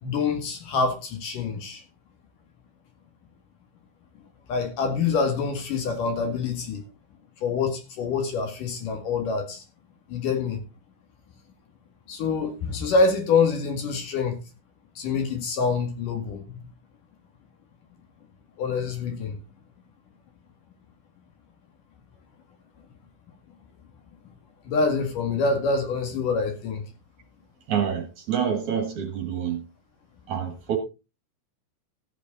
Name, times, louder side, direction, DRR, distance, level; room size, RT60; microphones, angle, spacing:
voice 1, 0.0-1.8 4.5-6.8 7.4-9.6 10.1-10.6 12.1-14.4 15.0-16.6 18.6-19.4 24.6-26.8, left 4 dB, 60° left, 3.4 m, -26 dB
voice 2, 27.7-29.6 30.3-30.8, right 8 dB, 55° right, 2.7 m, -27 dB
14.5 x 8.2 x 3.9 m
omnidirectional pair, 4.5 m